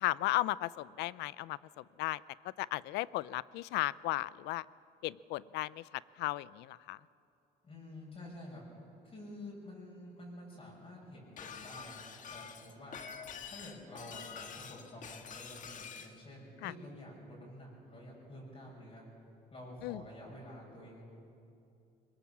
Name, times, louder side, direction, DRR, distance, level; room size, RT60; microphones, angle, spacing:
voice 1, 0.0-2.2 2.6-4.6 5.0-5.8 6.2-7.0 16.6-16.7 19.8-20.0, left 17 dB, 85° left, 20 dB, 0.5 m, -35 dB
voice 2, 7.6-8.6 9.0-12.0 12.3-13.0 13.5-19.0 19.5-21.0, left 1 dB, 35° left, -3 dB, 7.3 m, -49 dB
Shatter, 11.4-16.1, left 6 dB, 50° left, 1.5 m, -47 dB
22.5 x 21.0 x 7.3 m, 2.6 s
cardioid pair, 110°, 17 cm